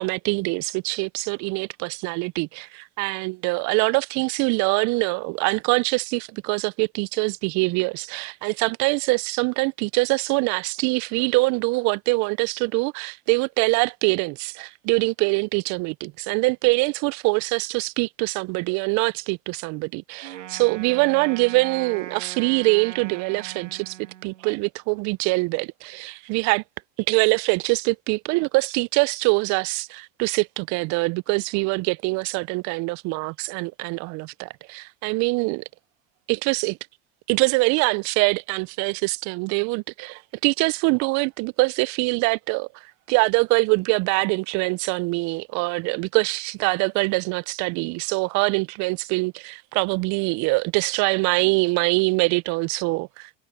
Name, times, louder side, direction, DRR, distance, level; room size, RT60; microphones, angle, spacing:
voice 1, 0.0-24.0 24.2-26.6 27.1-35.6 36.3-36.8 37.3-53.4, right 27 dB, 50° right, 0.6 m, -24 dB
Wind instrument woodwind instrument, 20.2-24.6, right 12 dB, 85° right, 2.0 m, -40 dB
hypercardioid pair, 85°, 36 cm